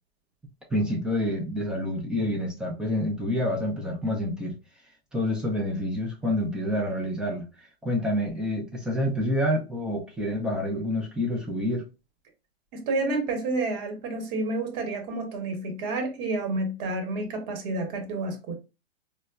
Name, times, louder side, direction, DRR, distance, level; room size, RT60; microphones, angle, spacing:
voice 1, 0.7-4.5 5.1-7.4 7.8-11.9, left 1 dB, 5° right, 0.4 m, -28 dB
voice 2, 12.7-18.5, right 2 dB, 40° right, 1.1 m, -29 dB
4.2 x 2.2 x 2.4 m
hypercardioid pair, 125°, 32 cm